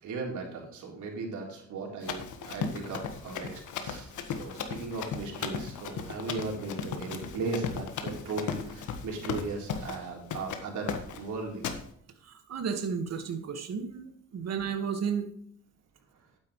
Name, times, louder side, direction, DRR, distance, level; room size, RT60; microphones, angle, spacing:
voice 1, 0.0-11.7, right 3 dB, 75° right, -1 dB, 3.8 m, -37 dB
Run, 2.0-10.1 10.3-10.6 10.9-11.3 11.6-11.8, left 6 dB, 80° left, 1.5 m, -36 dB
voice 2, 12.2-15.3, right 6 dB, 55° right, 6 dB, 1.8 m, -33 dB
12.0 x 9.7 x 3.2 m, 0.64 s
cardioid pair, 90°, 30 cm